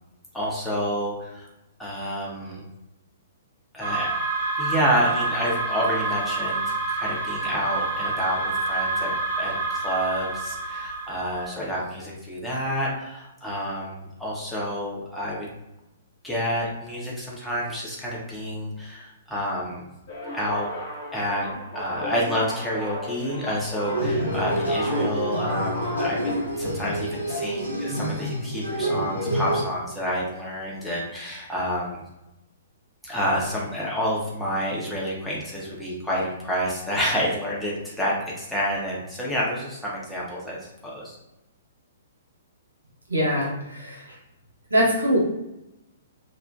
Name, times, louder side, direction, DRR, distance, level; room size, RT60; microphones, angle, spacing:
voice 1, 0.3-1.5 1.8-2.6 3.7-4.1 4.6-9.1 9.4-15.5 16.2-19.9 20.3-20.7 21.1-21.5 21.7-32.0 33.0-41.2, equal, 5° left, -6 dB, 0.6 m, -29 dB
sound 1, 3.8-11.5, right 3 dB, 50° right, 0.7 m, -28 dB
sound 2, 20.1-26.4, equal, 40° left, 0.8 m, -36 dB
sound 3, 23.8-29.6, right 1 dB, 80° left, 0.9 m, -27 dB
voice 2, 43.1-44.2 44.7-45.2, equal, 85° right, -4 dB, 0.9 m, -23 dB
2.6 x 2.1 x 2.3 m, 0.92 s
figure-of-eight pair, 115°, 0 cm